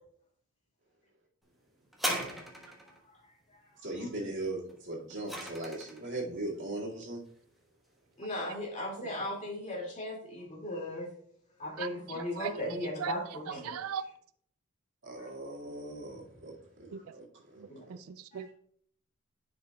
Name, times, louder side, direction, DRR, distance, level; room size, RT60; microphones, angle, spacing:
sound 1, 1.9-3.0 4.7-6.1 6.9-7.0, equal, ahead, 1.2 m, -36 dB
voice 1, 3.8-7.2 15.0-18.0, right 2 dB, 60° right, -3 dB, 2.0 m, -39 dB
voice 2, 8.2-11.1 11.6-13.8 17.7-17.8, left 1 dB, 35° left, -2 dB, 2.2 m, -37 dB
voice 3, 11.8-12.5 13.0-13.1 13.5-14.0 16.9-17.0 17.6-18.5, right 8 dB, 80° right, 13 dB, 0.3 m, -39 dB
10.0 x 5.2 x 2.3 m, 0.63 s
head